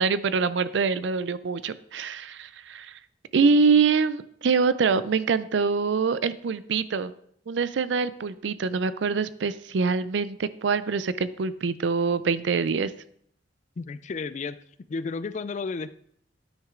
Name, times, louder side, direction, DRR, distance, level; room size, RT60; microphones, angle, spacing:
voice 1, 0.0-3.0 3.3-7.1 7.5-12.9, right 5 dB, 80° right, 15 dB, 0.4 m, -24 dB
voice 2, 13.8-14.6 14.9-15.9, left 4 dB, 40° left, 15 dB, 0.4 m, -32 dB
9.8 x 6.3 x 3.7 m, 0.66 s
head